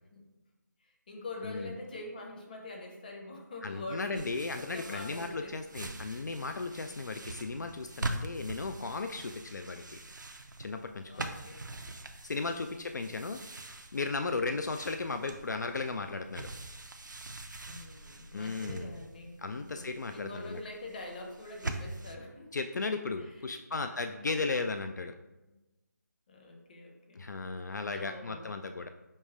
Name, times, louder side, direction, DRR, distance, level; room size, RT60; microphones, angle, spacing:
voice 1, 0.8-6.0 11.1-11.8 12.5-13.1 17.6-22.5 23.2-24.3 25.5-25.6 26.3-27.2 27.9-28.5, left 2 dB, 30° left, 1 dB, 0.8 m, -45 dB
voice 2, 1.4-1.8 3.6-10.0 10.6-11.4 12.2-13.4 13.9-16.5 18.3-18.9 19.4-20.6 22.5-25.1 27.2-28.9, left 3 dB, 70° left, 7 dB, 0.4 m, -35 dB
sound 1, 4.1-22.1, right 2 dB, 80° right, 0.6 m, -43 dB
5.2 x 2.1 x 4.8 m, 1.0 s
figure-of-eight pair, 160°, 10 cm